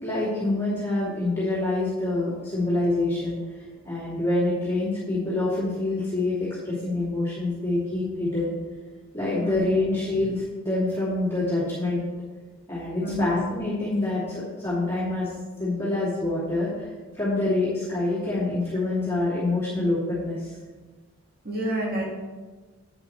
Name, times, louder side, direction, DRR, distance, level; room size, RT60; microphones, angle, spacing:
voice 1, 0.0-3.4 3.8-8.5 9.1-12.0 12.7-15.3 15.6-16.9 17.2-20.5, left 2 dB, 10° left, -11 dB, 2.7 m, -26 dB
voice 2, 13.0-13.3 21.4-22.1, right 1 dB, 45° right, -2 dB, 1.9 m, -28 dB
9.5 x 7.9 x 3.2 m, 1.3 s
head